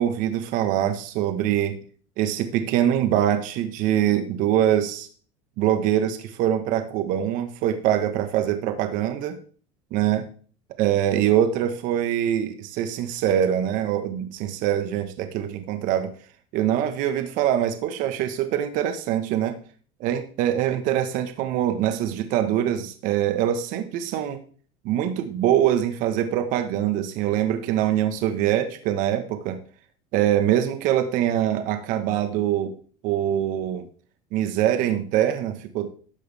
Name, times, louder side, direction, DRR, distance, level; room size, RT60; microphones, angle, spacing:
voice 1, 0.0-1.8 2.2-5.1 5.6-9.4 9.9-10.3 10.8-16.1 16.5-19.6 20.0-24.4 24.8-29.6 30.1-32.7 33.0-33.9 34.3-35.9, right 11 dB, 65° right, 8 dB, 1.5 m, -23 dB
13.0 x 8.4 x 3.6 m, 0.42 s
supercardioid pair, 105°, 15 cm